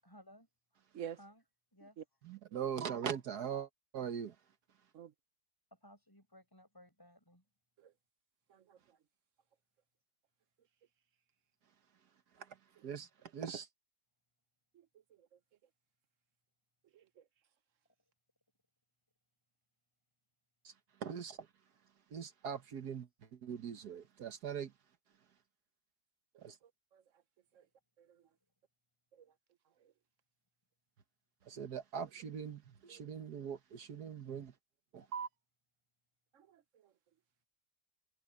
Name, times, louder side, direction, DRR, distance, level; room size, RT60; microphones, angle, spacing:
voice 1, 0.0-0.5 1.1-2.3 5.7-7.5 27.5-27.7 28.2-28.5 35.2-35.4, equal, 15° left, 6.1 m, -61 dB
voice 2, 2.2-4.4 12.3-13.7 20.6-20.7 21.0-21.5 22.1-24.7 26.4-26.6 31.4-34.5 34.9-35.3, right 7 dB, 75° right, 1.7 m, -42 dB
voice 3, 36.3-36.9, right 9 dB, 55° right, 1.1 m, -49 dB
omnidirectional pair, 1.7 m